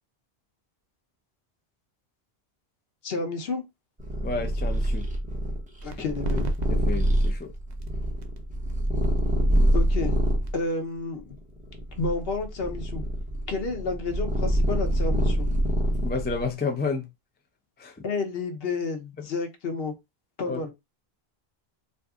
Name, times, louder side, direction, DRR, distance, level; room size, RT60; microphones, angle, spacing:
voice 1, 3.0-3.6 5.8-6.5 9.7-10.1 10.5-11.4 12.0-13.0 13.5-15.5 18.0-19.9 20.4-20.7, left 3 dB, 65° left, 1.0 m, -30 dB
Purr, 4.0-10.5 11.2-16.4, equal, 10° right, 0.8 m, -25 dB
voice 2, 4.2-5.0 6.7-7.5 16.0-17.1 17.8-18.0 20.5-20.6, left 4 dB, 15° left, 0.3 m, -30 dB
sound 1, 5.8-13.1, right 3 dB, 50° right, 0.7 m, -42 dB
2.6 x 2.5 x 3.5 m
omnidirectional pair, 1.1 m